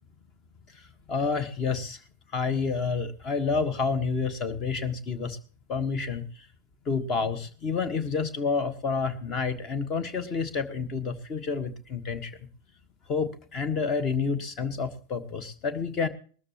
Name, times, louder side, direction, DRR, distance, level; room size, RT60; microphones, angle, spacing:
voice 1, 1.1-2.0 2.3-5.4 5.7-6.3 6.8-12.3 13.1-16.1, left 5 dB, 30° left, 13 dB, 1.5 m, -29 dB
20.0 x 13.5 x 3.0 m, 0.42 s
figure-of-eight pair, 90°, 0 cm